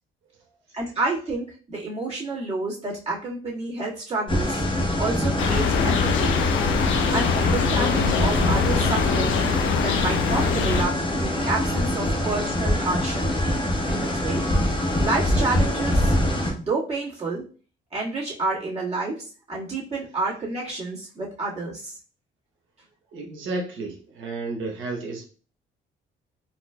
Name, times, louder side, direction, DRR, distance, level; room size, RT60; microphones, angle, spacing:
voice 1, 0.7-4.6 5.0-6.4 7.1-9.4 9.8-13.2 13.9-14.5 15.0-16.2 16.5-17.5 17.9-22.0, right 3 dB, 30° right, -6 dB, 1.7 m, -29 dB
sound 1, 4.3-16.5, left 1 dB, 25° left, 1.0 m, -24 dB
sound 2, 5.4-10.8, left 6 dB, 75° left, 0.5 m, -23 dB
voice 2, 23.1-25.2, right 3 dB, 80° right, 1 dB, 1.0 m, -32 dB
4.2 x 2.5 x 2.2 m, 0.38 s
cardioid pair, 90°, 20 cm